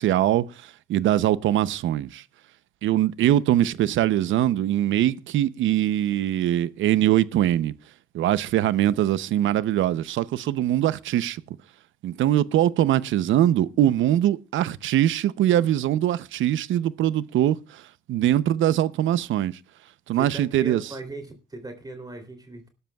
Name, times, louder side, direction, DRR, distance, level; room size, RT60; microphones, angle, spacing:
voice 1, 0.0-2.2 2.8-7.7 8.1-11.4 12.0-19.6 20.1-20.8, right 12 dB, 75° right, 0.7 m, -22 dB
voice 2, 20.1-22.7, right 2 dB, 20° right, 3.1 m, -38 dB
20.0 x 12.5 x 2.3 m
cardioid pair, 90°, 20 cm